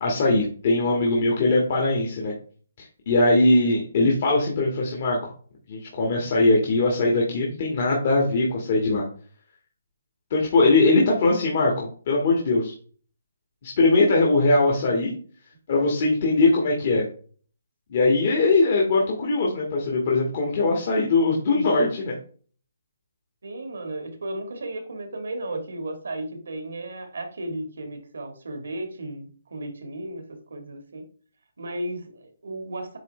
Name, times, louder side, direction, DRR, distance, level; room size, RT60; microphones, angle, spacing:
voice 1, 0.0-2.3 2.8-5.3 5.7-9.0 10.3-12.7 13.6-15.1 15.7-17.0 17.9-22.1, left 2 dB, 45° left, -2 dB, 1.9 m, -21 dB
voice 2, 23.4-31.1 31.6-33.0, right 1 dB, 80° right, 6 dB, 1.8 m, -34 dB
8.9 x 3.5 x 3.3 m, 0.43 s
hypercardioid pair, 160°, 0 cm